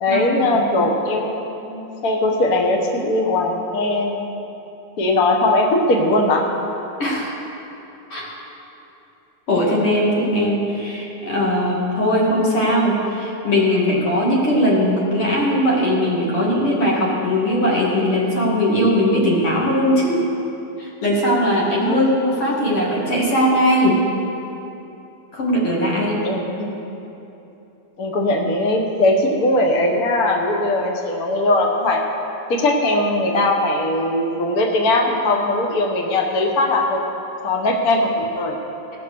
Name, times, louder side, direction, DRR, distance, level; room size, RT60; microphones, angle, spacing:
voice 1, 0.0-4.2 5.0-6.5 21.8-22.3 25.9-26.7 28.0-32.0 32.5-37.0 37.4-38.5, left 2 dB, 90° left, 1 dB, 0.8 m, -20 dB
voice 2, 7.0-7.4 8.1-8.3 9.5-20.3 20.8-24.0 25.3-26.1, equal, 50° left, -4 dB, 3.0 m, -19 dB
18.0 x 6.0 x 6.8 m, 3.0 s
omnidirectional pair, 3.4 m